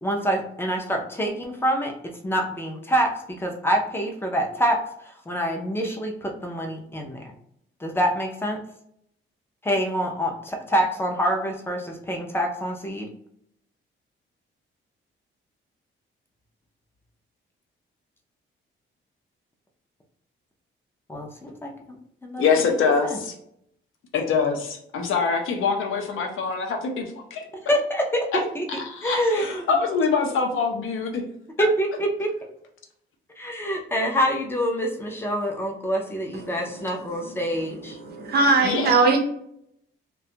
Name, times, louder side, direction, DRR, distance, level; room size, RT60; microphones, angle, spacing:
voice 1, 0.0-2.0 2.2-7.2 7.8-8.6 9.6-13.1 21.1-21.7 22.2-22.7 23.0-23.2 27.5-28.7 29.0-29.8 31.6-32.3 33.4-38.0, equal, 10° left, 2 dB, 0.4 m, -26 dB
voice 2, 22.4-23.3 24.1-27.4 28.3-28.4 28.7-31.2 31.6-31.7 38.6-38.9, left 5 dB, 70° left, 2 dB, 0.6 m, -24 dB
voice 3, 37.9-39.2, right 3 dB, 50° right, 3 dB, 0.6 m, -20 dB
2.5 x 2.2 x 2.7 m, 0.72 s
cardioid pair, 145°, 21 cm